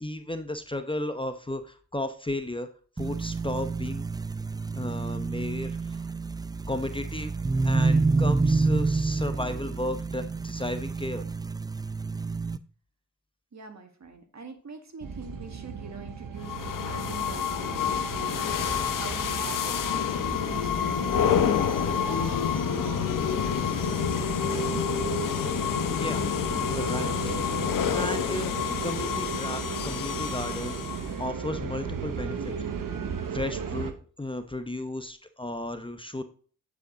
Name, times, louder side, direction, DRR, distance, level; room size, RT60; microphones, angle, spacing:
voice 1, 0.0-2.7 3.0-4.1 4.7-6.1 6.7-7.3 7.6-11.3 26.0-26.3 26.7-27.4 27.7-28.5 28.8-32.5 33.3-36.2, left 1 dB, 15° left, 9 dB, 0.8 m, -34 dB
sound 1, 3.0-12.6, right 3 dB, 10° right, 0.4 m, -28 dB
voice 2, 13.5-20.0 20.3-22.3, right 4 dB, 55° right, 5 dB, 1.7 m, -44 dB
sound 2, 15.0-33.9, right 6 dB, 75° right, 1.0 m, -36 dB
sound 3, 16.4-31.2, left 8 dB, 70° left, 0.8 m, -28 dB
8.3 x 5.0 x 3.9 m, 0.41 s
cardioid pair, 45°, 34 cm